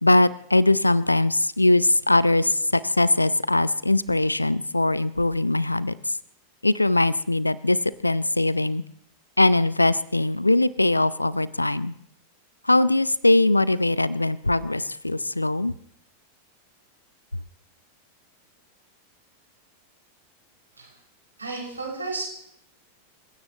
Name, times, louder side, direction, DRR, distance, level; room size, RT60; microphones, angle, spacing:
voice 1, 0.0-6.2 6.6-8.8 9.4-11.9 12.6-15.7, left 2 dB, 85° left, 19 dB, 0.6 m, -21 dB
voice 2, 21.4-22.3, right 3 dB, 80° right, -2 dB, 6.3 m, -32 dB
27.5 x 16.0 x 3.1 m, 0.69 s
figure-of-eight pair, 90°, 0 cm